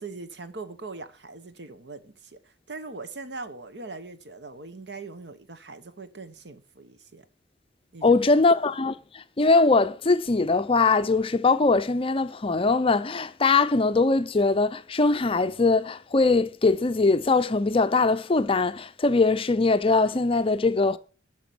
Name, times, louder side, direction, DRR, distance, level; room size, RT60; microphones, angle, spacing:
voice 1, 0.0-7.2 7.9-8.4, right 3 dB, 70° right, 1.1 m, -41 dB
voice 2, 8.0-21.0, left 3 dB, 30° left, 0.5 m, -22 dB
11.0 x 6.1 x 6.1 m
head